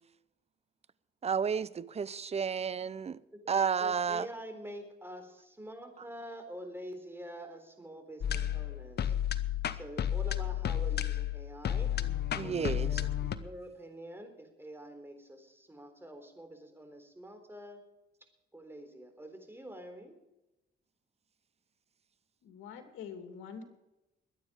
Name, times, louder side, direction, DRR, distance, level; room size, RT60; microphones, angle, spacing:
voice 1, 1.2-3.2 3.5-4.3 12.4-12.9, right 6 dB, 30° right, 0.6 m, -31 dB
voice 2, 3.3-9.1 9.7-11.9 12.4-17.8 18.5-20.2, right 1 dB, 10° right, 3.9 m, -46 dB
sound 1, 8.2-13.4, left 10 dB, 55° left, 1.0 m, -32 dB
voice 3, 22.4-23.6, left 6 dB, 85° left, 2.8 m, -45 dB
22.0 x 9.5 x 5.2 m
cardioid pair, 90°, 20 cm